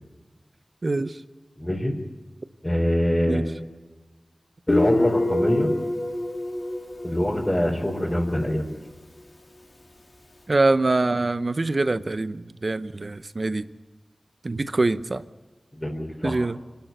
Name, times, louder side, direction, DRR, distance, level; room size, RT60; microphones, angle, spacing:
voice 1, 0.8-1.2 3.3-3.4 10.5-13.6 14.4-15.2 16.2-16.6, right 2 dB, 50° right, 13 dB, 0.8 m, -24 dB
voice 2, 1.6-1.9 2.6-3.4 4.7-5.7 7.0-8.7 15.7-16.4, equal, 20° left, -3 dB, 4.0 m, -24 dB
Guitar, 4.7-8.2, left 1 dB, 45° left, 2.9 m, -26 dB
26.0 x 13.0 x 9.3 m, 1.2 s
wide cardioid pair, 60°, 0 cm